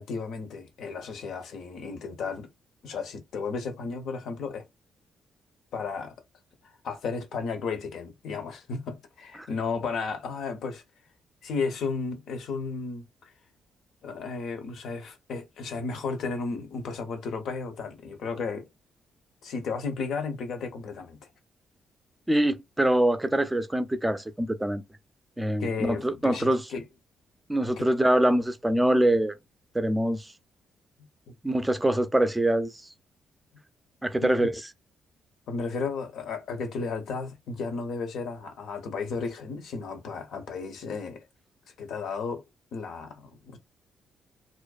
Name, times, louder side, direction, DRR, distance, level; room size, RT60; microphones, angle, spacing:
voice 1, 0.0-2.5 2.8-4.6 5.7-6.1 6.8-10.8 11.4-13.1 14.0-18.7 19.4-21.3 25.6-26.8 27.8-27.9 34.2-34.5 35.5-41.2 41.8-42.4 42.7-43.6, left 4 dB, 75° left, 0.7 m, -33 dB
voice 2, 22.3-24.8 25.4-26.7 27.5-29.4 29.7-30.3 31.4-32.8 34.0-34.5, right 1 dB, 10° right, 0.4 m, -24 dB
2.5 x 2.1 x 2.3 m
supercardioid pair, 65°, 0 cm